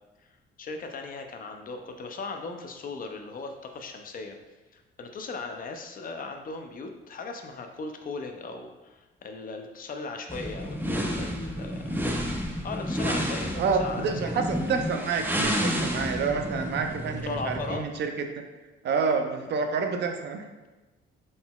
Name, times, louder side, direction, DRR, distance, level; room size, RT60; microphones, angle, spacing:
voice 1, 0.6-4.4 4.7-11.9 12.6-14.4 17.0-17.8, left 3 dB, 45° left, 4 dB, 0.5 m, -38 dB
sound 1, 10.3-17.9, equal, 10° right, 0.5 m, -30 dB
voice 2, 13.6-18.4 18.8-20.4, right 5 dB, 60° right, 5 dB, 0.5 m, -28 dB
3.9 x 3.8 x 2.3 m, 1.1 s
cardioid pair, 90°, 20 cm